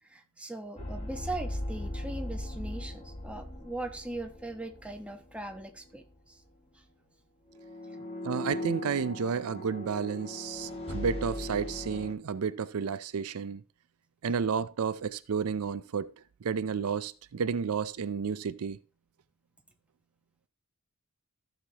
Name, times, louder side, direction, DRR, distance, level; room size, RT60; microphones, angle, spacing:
voice 1, 0.1-6.4 8.0-8.1, right 2 dB, 5° right, 1.0 m, -40 dB
sound 1, 0.8-5.6 5.9-6.1 7.5-12.1, left 1 dB, 25° left, 1.8 m, -38 dB
voice 2, 8.2-13.6 14.2-16.1 16.4-18.8, right 6 dB, 75° right, 0.5 m, -31 dB
14.5 x 6.5 x 2.9 m
head